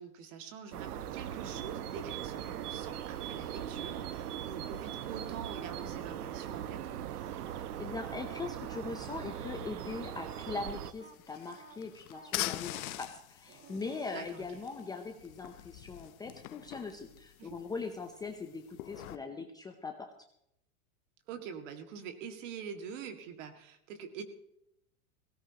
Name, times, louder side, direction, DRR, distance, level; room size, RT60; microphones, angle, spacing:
voice 1, 0.0-7.0 14.1-14.5 17.4-17.6 21.3-24.2, right 7 dB, 55° right, 7 dB, 2.1 m, -45 dB
sound 1, 0.7-10.9, right 10 dB, 90° right, 1.1 m, -40 dB
sound 2, 2.4-3.7 4.3-6.4 6.7-14.9 17.6-17.8, right 4 dB, 25° right, 2.0 m, -57 dB
voice 2, 7.5-20.1, left 4 dB, 10° left, 4 dB, 0.6 m, -41 dB
sound 3, 10.9-19.2, left 16 dB, 65° left, 0.9 m, -43 dB
18.0 x 17.0 x 2.9 m, 0.76 s
supercardioid pair, 150°, 45 cm